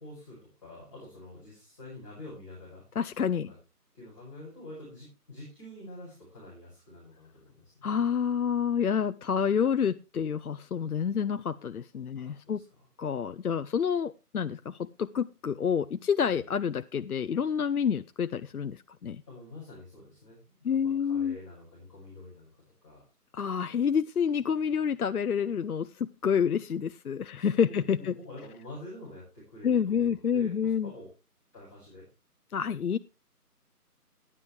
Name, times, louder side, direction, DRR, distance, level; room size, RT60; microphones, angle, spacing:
voice 1, 0.0-2.8 3.5-3.6 3.9-7.9 12.1-12.9 16.3-16.4 19.3-23.0 27.3-31.1 31.5-32.1, left 1 dB, 20° left, -10 dB, 5.5 m, -47 dB
voice 2, 3.0-3.5 7.8-12.6 13.0-19.2 20.6-21.4 23.3-28.1 29.6-30.9 32.5-33.0, left 7 dB, 70° left, 13 dB, 0.6 m, -28 dB
14.5 x 9.9 x 3.3 m, 0.29 s
figure-of-eight pair, 175°, 47 cm